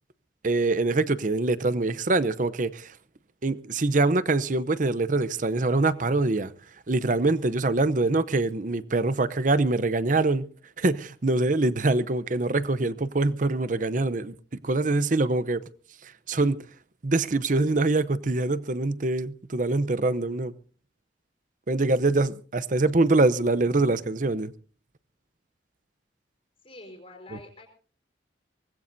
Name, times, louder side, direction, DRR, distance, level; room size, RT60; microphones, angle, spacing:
voice 1, 0.4-2.9 3.4-6.5 6.9-10.5 10.8-15.6 16.0-16.6 17.0-20.5 21.7-24.5, right 2 dB, 45° right, 0.7 m, -24 dB
voice 2, 26.6-27.7, left 2 dB, 35° left, 4.2 m, -46 dB
24.0 x 19.5 x 2.7 m
head